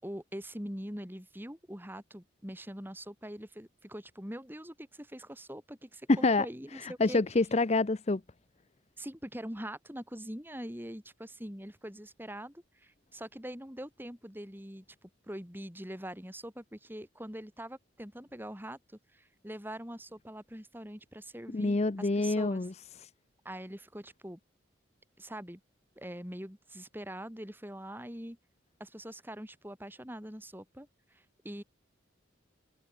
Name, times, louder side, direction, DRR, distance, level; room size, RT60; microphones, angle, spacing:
voice 1, 0.0-7.2 9.0-14.8 15.2-22.7 23.4-24.4 25.2-25.6 26.0-28.4 28.8-31.6, equal, 10° right, 4.9 m, -43 dB
voice 2, 6.8-8.2 21.5-22.7, left 3 dB, 35° left, 0.6 m, -27 dB
head